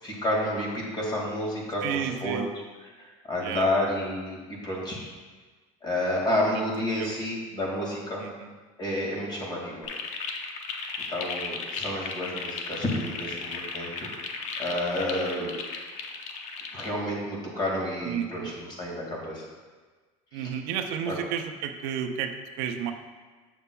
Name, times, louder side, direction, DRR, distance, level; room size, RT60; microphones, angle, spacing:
voice 1, 0.0-2.4 3.0-4.4 4.6-5.0 5.8-8.2 8.8-9.9 11.1-14.1 14.6-15.5 16.7-19.5 20.3-20.5 21.1-21.2, left 1 dB, 30° left, -2 dB, 2.0 m, -30 dB
voice 2, 1.8-2.5 3.4-3.7 6.5-7.2 8.2-8.5 18.0-18.5 20.3-22.9, right 8 dB, 75° right, 6 dB, 0.5 m, -32 dB
sound 1, 9.8-16.9, left 4 dB, 50° left, 0.7 m, -35 dB
7.8 x 6.8 x 2.2 m, 1.4 s
cardioid pair, 125°, 15 cm